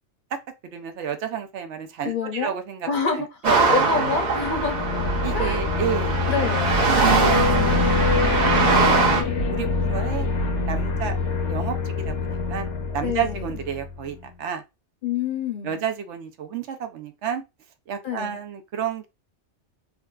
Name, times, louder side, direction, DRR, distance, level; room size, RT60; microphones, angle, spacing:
voice 1, 0.6-3.7 5.2-6.2 6.9-7.4 8.7-10.3 10.7-11.2 11.5-14.6 15.6-17.4 17.9-19.1, right 8 dB, 75° right, 0.9 m, -31 dB
voice 2, 2.0-2.5 2.9-3.3 3.7-4.9 5.3-5.6 6.3-7.5 13.0-13.5 15.0-15.8 18.0-18.4, left 6 dB, 55° left, 0.7 m, -28 dB
sound 1, 3.4-9.2, right 4 dB, 45° right, 0.8 m, -22 dB
sound 2, 3.9-14.1, left 3 dB, 85° left, 1.0 m, -25 dB
3.7 x 2.2 x 2.2 m
omnidirectional pair, 1.2 m